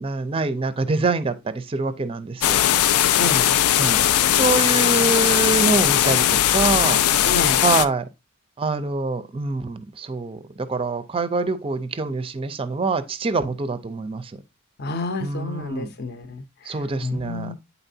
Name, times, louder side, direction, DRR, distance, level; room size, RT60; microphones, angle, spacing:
voice 1, 0.0-2.6 3.8-4.0 4.3-8.1 8.6-14.3 15.2-15.9 16.7-17.5, right 3 dB, 25° right, 0.4 m, -25 dB
sound 1, 2.4-7.8, left 11 dB, 85° left, 0.4 m, -19 dB
voice 2, 3.2-3.6 7.2-7.6 14.8-17.5, left 2 dB, 50° left, 0.7 m, -30 dB
8.9 x 4.1 x 2.7 m
head